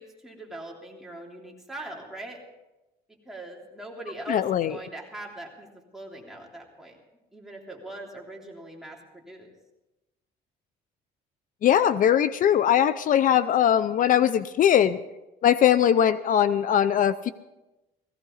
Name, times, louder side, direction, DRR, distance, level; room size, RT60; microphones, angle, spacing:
voice 1, 0.0-2.4 3.1-5.7 5.9-7.0 7.3-9.5, right 2 dB, ahead, -2 dB, 3.4 m, -41 dB
voice 2, 4.3-4.7 11.6-15.0 15.4-17.3, left 10 dB, 50° left, 15 dB, 0.5 m, -21 dB
18.0 x 15.5 x 4.1 m, 1.0 s
cardioid pair, 110°, 17 cm